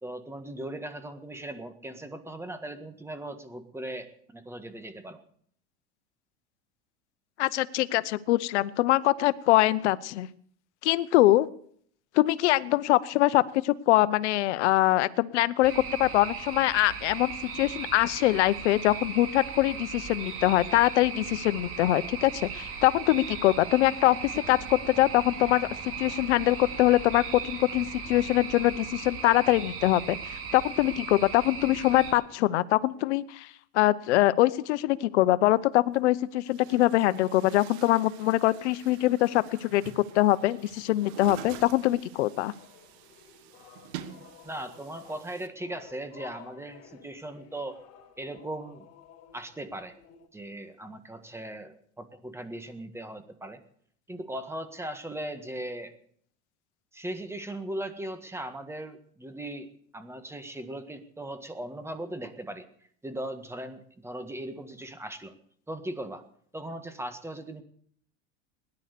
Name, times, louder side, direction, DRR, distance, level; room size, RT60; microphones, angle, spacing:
voice 1, 0.0-5.2 44.4-47.8 48.2-48.9 49.3-49.9 50.3-53.6 54.1-55.9 56.9-62.6 63.0-65.4 65.7-66.2 66.5-67.6, right 1 dB, 5° right, 9 dB, 1.7 m, -38 dB
voice 2, 7.4-10.3 10.8-11.5 12.1-33.5 33.7-42.5, left 16 dB, 85° left, 17 dB, 0.8 m, -23 dB
sound 1, 15.6-32.1, right 6 dB, 40° right, 2.7 m, -38 dB
Chatter / Gurgling / Tap, 35.6-35.7 36.4-45.5, right 10 dB, 70° right, 1.6 m, -47 dB
sound 2, 42.6-50.3, left 8 dB, 45° left, 4.3 m, -53 dB
18.0 x 10.5 x 6.7 m, 0.62 s
supercardioid pair, 115°, 34 cm